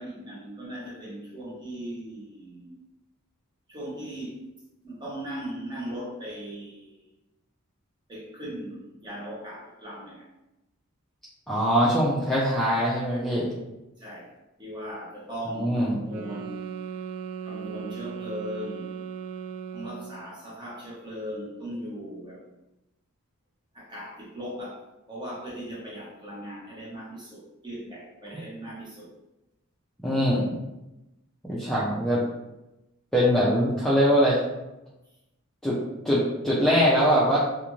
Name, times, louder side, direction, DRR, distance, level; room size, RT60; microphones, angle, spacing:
voice 1, 0.0-2.8 3.7-4.4 4.8-7.0 8.1-10.3 14.0-14.3 14.6-16.7 17.5-18.9 19.7-22.4 23.7-29.1, equal, 20° right, -5 dB, 0.8 m, -38 dB
voice 2, 11.5-13.5 15.5-15.9 30.0-30.6 31.5-32.2 33.1-34.4 35.6-35.8 36.0-37.4, equal, ahead, -9 dB, 0.4 m, -22 dB
sound 1, 16.1-20.3, right 7 dB, 75° right, 0.3 m, -37 dB
2.5 x 2.5 x 3.0 m, 0.95 s
head